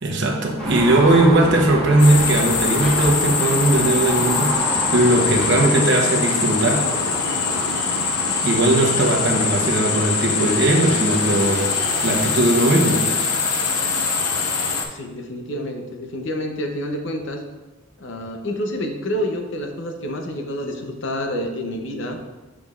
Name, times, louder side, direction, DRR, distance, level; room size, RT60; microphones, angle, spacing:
voice 1, 0.0-6.9 8.4-11.7 12.0-13.1, right 2 dB, 50° right, 1 dB, 1.0 m, -18 dB
sound 1, 0.6-5.6, equal, 5° left, 1.7 m, -27 dB
sound 2, 2.0-14.9, left 4 dB, 90° left, 0.8 m, -23 dB
voice 2, 14.9-17.4 18.0-22.2, equal, 55° left, 4 dB, 0.7 m, -28 dB
7.1 x 6.1 x 2.4 m, 1.1 s
head